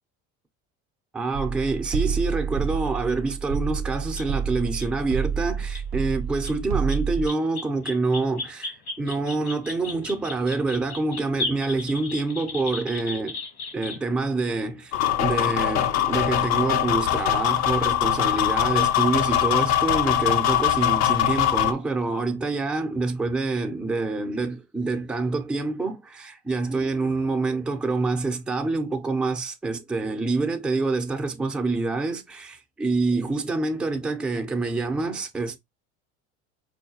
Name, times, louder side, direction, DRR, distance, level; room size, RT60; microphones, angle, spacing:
voice 1, 1.1-13.4 13.7-35.6, right 3 dB, 5° right, 0.5 m, -26 dB
sound 1, 1.3-7.3, right 7 dB, 55° right, 0.5 m, -28 dB
sound 2, 4.2-4.3 4.8-4.9 5.6-5.8 6.4-6.5 6.9-14.1 15.5-15.6 16.9-17.3, left 3 dB, 70° left, 1.6 m, -35 dB
sound 3, 14.9-21.7, left 11 dB, 55° left, 0.6 m, -22 dB
4.5 x 2.2 x 2.8 m
supercardioid pair, 95°, 34 cm